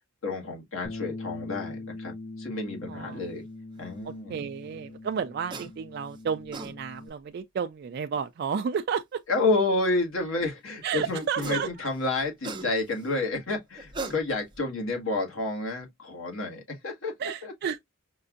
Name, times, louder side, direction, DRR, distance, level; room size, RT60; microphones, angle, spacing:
voice 1, 0.2-3.4 3.8-4.4 9.3-17.1 17.4-17.5, left 2 dB, 80° left, 1.5 m, -30 dB
Bass guitar, 0.8-7.1, left 2 dB, 35° left, 0.8 m, -42 dB
voice 2, 2.9-3.2 4.0-9.2 10.8-11.7 17.2-17.8, right 7 dB, 50° right, 0.3 m, -32 dB
sound 1, 5.5-5.7 6.3-6.7 8.2-8.3 11.2-11.7 12.0-13.0 13.8-14.6, right 3 dB, 25° right, 0.6 m, -37 dB
5.3 x 2.4 x 2.5 m
head